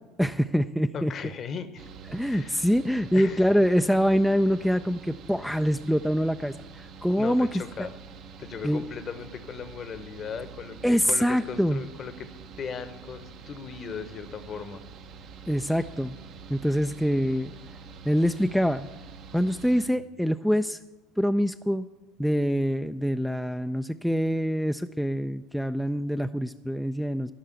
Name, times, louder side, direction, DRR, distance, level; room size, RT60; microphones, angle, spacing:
voice 1, 0.2-1.1 2.1-7.5 7.8-7.9 8.6-8.8 10.8-11.8 15.5-16.1 16.5-17.5 18.1-18.9 19.3-20.8 21.2-21.8 22.2-27.3, equal, ahead, 8 dB, 0.4 m, -25 dB
voice 2, 0.9-1.9 2.3-2.6 3.1-3.5 7.2-7.9 8.4-12.3 12.6-14.8, left 6 dB, 40° left, 12 dB, 1.0 m, -37 dB
Mechanical fan, 1.8-19.9, right 5 dB, 55° right, 0.9 m, -46 dB
13.0 x 5.6 x 8.1 m, 1.1 s
hypercardioid pair, 70°, 0 cm